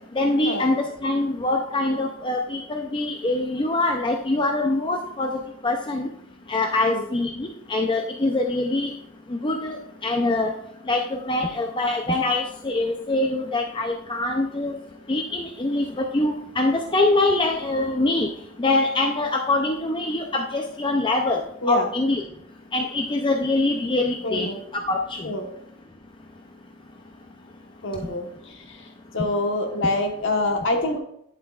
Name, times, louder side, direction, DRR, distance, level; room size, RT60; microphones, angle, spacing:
voice 1, 0.2-5.3 5.6-6.1 6.5-8.9 9.4-10.5 10.9-14.8 15.1-18.3 18.6-21.4 21.7-22.2 22.7-24.5 24.9-25.0 29.8-29.9, left 2 dB, 25° left, 2 dB, 0.5 m, -24 dB
voice 2, 24.2-24.6 25.2-25.5 27.8-28.8 29.1-31.0, left 2 dB, 60° left, 3 dB, 1.2 m, -25 dB
9.0 x 8.1 x 2.4 m, 0.74 s
head